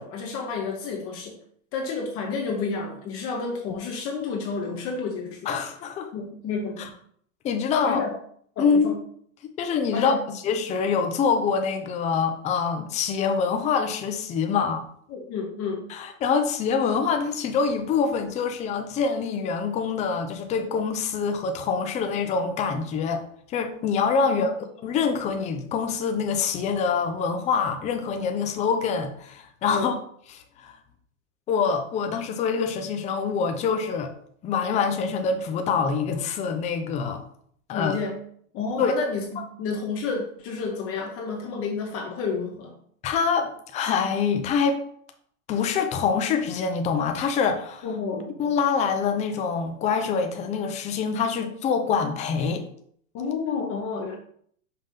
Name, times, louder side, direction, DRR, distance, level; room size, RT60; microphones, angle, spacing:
voice 1, 0.0-1.4 1.7-5.5 6.1-6.9 7.8-8.1 8.6-8.9 9.9-10.2 15.1-15.9 24.2-24.5 29.7-29.9 37.7-38.2 38.5-42.7 47.8-48.3 53.1-54.2, left 4 dB, 35° left, 1 dB, 1.0 m, -30 dB
voice 2, 5.5-6.1 6.8-6.9 7.4-8.0 8.6-8.9 9.4-10.1 10.4-14.9 15.9-23.2 23.5-24.5 24.8-29.9 30.3-30.7 31.5-34.1 34.4-37.2 37.7-38.0 38.8-38.9 43.0-44.8 45.5-47.8 48.4-52.6, left 6 dB, 15° left, 5 dB, 0.5 m, -25 dB
5.5 x 3.5 x 5.6 m, 0.62 s
supercardioid pair, 140°, 41 cm